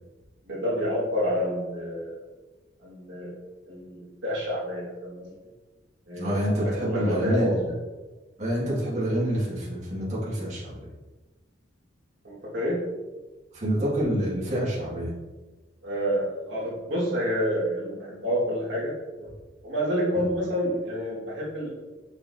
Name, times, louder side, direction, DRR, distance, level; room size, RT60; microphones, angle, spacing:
voice 1, 0.5-2.2 2.8-3.3 3.6-5.3 6.1-7.6 12.2-12.8 15.8-19.3 19.6-21.7, equal, 70° right, -6 dB, 1.8 m, -28 dB
voice 2, 6.1-7.6 8.4-10.8 13.5-15.1 20.1-20.3, equal, 40° right, -8 dB, 1.9 m, -27 dB
6.6 x 5.6 x 2.7 m, 1.2 s
head